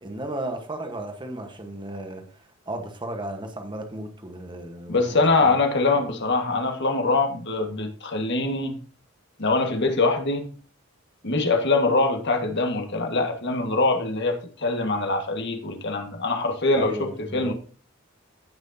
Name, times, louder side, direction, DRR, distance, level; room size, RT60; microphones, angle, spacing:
voice 1, 0.0-5.5 5.9-6.0 16.7-17.5, right 1 dB, 25° right, 1.3 m, -35 dB
voice 2, 4.9-8.8 9.4-10.5 11.2-17.5, left 3 dB, 55° left, 1.7 m, -23 dB
16.0 x 6.1 x 2.8 m
head